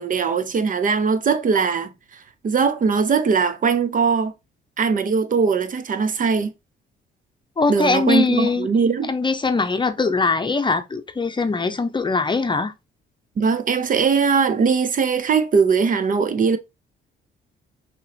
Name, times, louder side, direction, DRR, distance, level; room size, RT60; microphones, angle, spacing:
voice 1, 0.0-1.9 2.4-4.3 4.8-6.5 7.7-9.1 13.4-16.6, right 5 dB, 45° right, 0.6 m, -20 dB
voice 2, 7.6-8.7 9.1-12.7, left 4 dB, 25° left, 0.7 m, -21 dB
6.0 x 3.0 x 2.8 m
cardioid pair, 90°, 20 cm